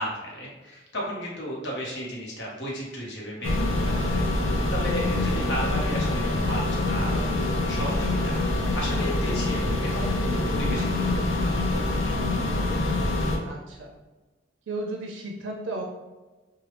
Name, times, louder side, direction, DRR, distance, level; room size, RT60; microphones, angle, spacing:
voice 1, 0.0-4.2 4.7-12.1, equal, 65° left, -4 dB, 1.0 m, -34 dB
sound 1, 3.4-13.4, left 2 dB, 80° left, 0.6 m, -25 dB
voice 2, 13.4-13.9 14.7-15.8, right 2 dB, 70° right, 1 dB, 0.4 m, -34 dB
3.3 x 2.3 x 3.1 m, 1.2 s
head